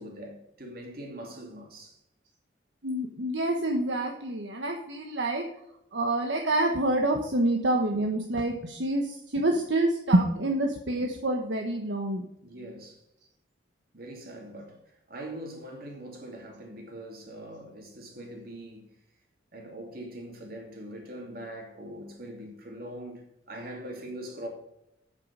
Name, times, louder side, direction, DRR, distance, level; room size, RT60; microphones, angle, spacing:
voice 1, 0.0-2.0 12.4-13.0 13.9-18.9 19.5-24.5, right 1 dB, 50° right, 2.8 m, -42 dB
voice 2, 2.8-5.4 5.9-12.3, right 1 dB, 70° right, 1.2 m, -27 dB
8.5 x 7.6 x 5.5 m
head